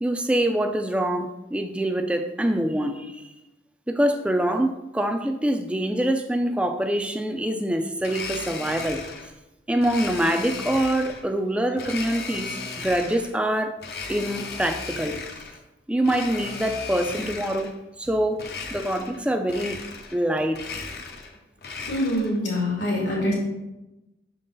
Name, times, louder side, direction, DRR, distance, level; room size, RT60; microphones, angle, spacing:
voice 1, 0.0-3.3 3.9-9.0 9.7-13.8 14.1-15.2 15.9-17.7 18.0-18.4 18.7-19.8 20.1-20.6, right 1 dB, 5° right, 6 dB, 0.3 m, -25 dB
Domestic sounds home sounds, 8.0-9.3 9.8-11.2 11.8-13.3 13.8-15.6 16.0-17.8 18.4-19.2 19.5-20.2 20.5-22.4, left 4 dB, 60° left, 0.7 m, -36 dB
voice 2, 21.9-23.3, left 1 dB, 80° left, -4 dB, 1.6 m, -24 dB
6.4 x 3.8 x 3.9 m, 0.99 s
head